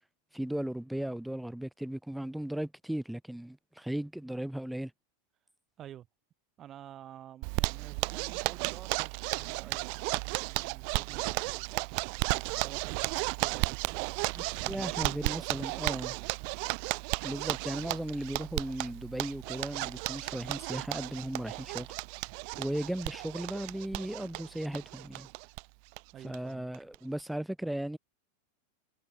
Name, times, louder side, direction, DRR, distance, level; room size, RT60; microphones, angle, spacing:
voice 1, 0.3-4.9 14.3-16.2 17.2-21.9 22.6-25.3 26.2-28.0, right 1 dB, ahead, 0.6 m, -36 dB
voice 2, 6.6-12.0 12.3-16.5 26.1-26.7, right 11 dB, 30° right, 5.4 m, -51 dB
Zipper (clothing), 7.4-25.6 25.9-26.0 26.3-26.4 26.7-27.2, right 40 dB or more, 45° right, 0.8 m, -34 dB
figure-of-eight pair, 90°, 0 cm